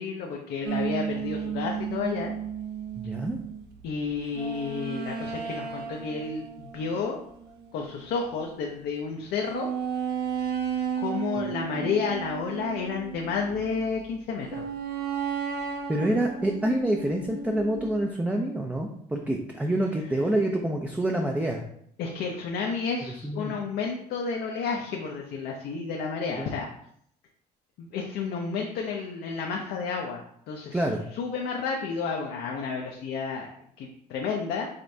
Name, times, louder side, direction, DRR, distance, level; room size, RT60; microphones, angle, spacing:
voice 1, 0.0-2.3 3.8-7.2 7.7-9.7 11.0-14.6 22.0-26.7 27.8-30.8 31.1-33.5 33.8-34.7, left 5 dB, 75° left, 0 dB, 0.6 m, -31 dB
sound 1, 0.6-8.4 8.8-8.9 9.5-13.9 14.5-18.0, right 7 dB, 75° right, 0.7 m, -34 dB
voice 2, 2.9-3.4 11.8-11.9 15.9-21.6 23.2-23.5 26.4-26.5 30.7-31.0, right 1 dB, 10° right, 1 dB, 0.4 m, -27 dB
5.0 x 3.3 x 2.7 m, 0.67 s
cardioid pair, 110°, 17 cm